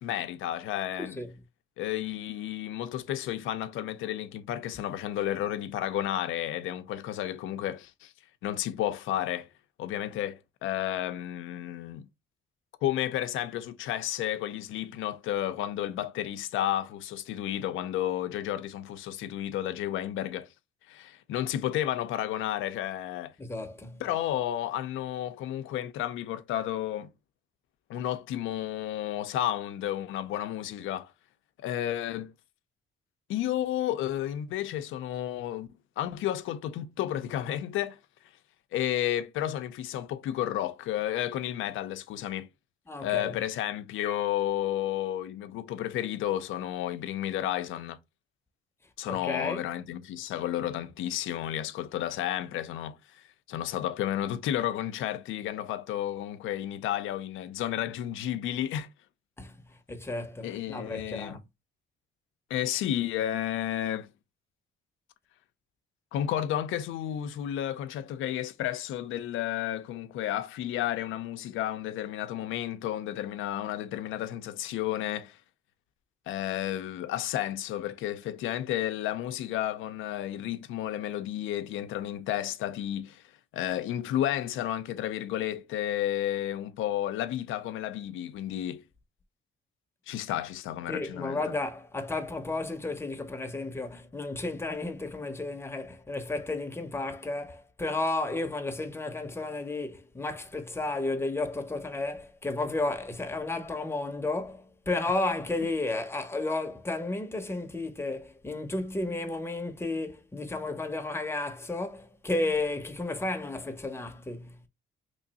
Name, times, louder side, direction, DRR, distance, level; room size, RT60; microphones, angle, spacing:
voice 1, 0.0-1.2 1.8-8.1 8.4-9.5 9.8-12.1 12.8-20.5 20.9-23.3 24.0-27.1 27.9-31.1 31.6-32.3 33.3-35.7 36.0-38.0 38.7-42.5 43.0-48.0 49.0-53.2 53.5-58.9 60.4-61.4 62.5-64.1 66.1-75.4 76.3-83.2 83.5-88.8 90.1-91.4, left 12 dB, 85° left, 0.5 m, -32 dB
voice 2, 1.0-1.3 23.4-24.0 42.9-43.4 49.1-49.6 59.4-61.4 90.9-114.7, left 2 dB, 10° left, 0.7 m, -33 dB
3.1 x 2.5 x 4.0 m
cardioid pair, 90°, 20 cm